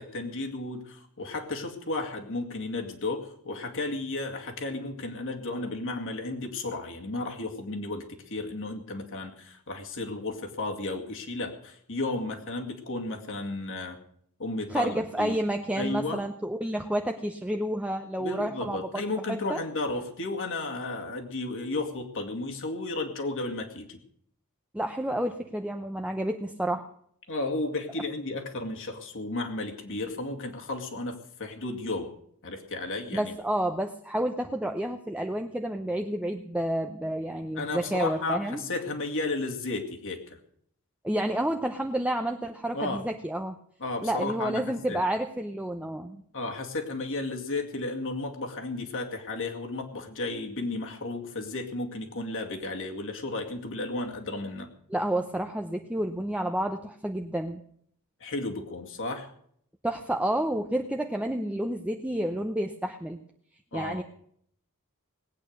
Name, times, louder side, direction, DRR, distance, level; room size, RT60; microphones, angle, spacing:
voice 1, 0.0-14.0 14.4-15.4 15.8-16.2 18.2-24.0 27.3-32.1 32.4-33.3 37.5-40.4 42.7-43.0 43.8-45.0 46.3-54.7 58.2-59.3 63.7-64.0, left 2 dB, 60° left, 2 dB, 2.3 m, -33 dB
voice 2, 14.7-18.8 19.5-19.6 24.7-26.8 33.1-38.6 41.0-43.5 44.0-46.2 54.9-57.6 59.8-63.2 63.7-64.0, right 1 dB, 5° right, 4 dB, 0.7 m, -30 dB
19.0 x 8.9 x 6.6 m, 0.66 s
head